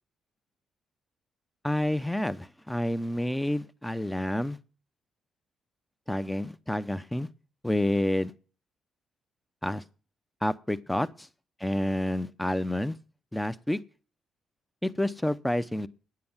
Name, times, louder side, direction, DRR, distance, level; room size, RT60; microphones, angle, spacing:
voice 1, 1.6-4.6 6.1-7.3 7.6-8.3 9.6-9.8 10.4-11.1 11.6-12.9 13.3-13.8 14.8-15.9, left 1 dB, 5° left, 0.7 m, -29 dB
9.6 x 7.7 x 7.2 m
cardioid pair, 90°, 0 cm